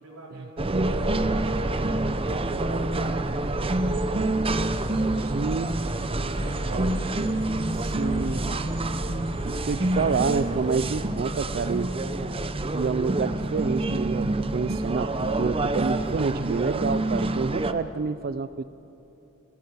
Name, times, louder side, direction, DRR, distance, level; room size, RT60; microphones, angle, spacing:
voice 1, 0.0-4.7 6.2-8.7, right 1 dB, 90° right, -2 dB, 4.7 m, -47 dB
sound 1, 0.6-17.7, right 2 dB, 25° right, 0.8 m, -27 dB
voice 2, 5.2-5.8 6.7-6.9 7.8-8.4 9.4-11.9 12.7-18.6, right 5 dB, 45° right, 13 dB, 0.4 m, -28 dB
sound 2, 5.5-11.1, equal, 80° left, 5.4 m, -41 dB
26.5 x 16.5 x 6.7 m, 3.0 s
head